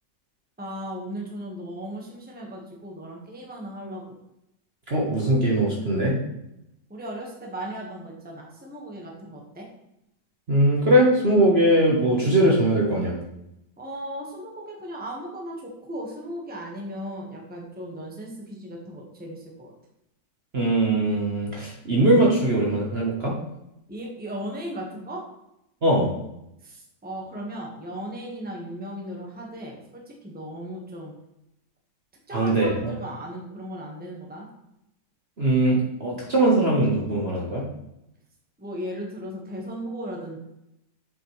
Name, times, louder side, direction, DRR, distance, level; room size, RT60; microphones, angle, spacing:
voice 1, 0.6-4.0 6.9-9.7 13.8-19.7 23.9-25.2 26.6-31.1 32.3-34.5 38.6-40.4, equal, 5° right, -1 dB, 1.3 m, -36 dB
voice 2, 4.9-6.2 10.5-13.2 20.5-23.3 25.8-26.1 32.3-32.7 35.4-37.6, right 1 dB, 40° right, -3 dB, 1.4 m, -21 dB
7.6 x 5.9 x 3.3 m, 0.85 s
omnidirectional pair, 1.9 m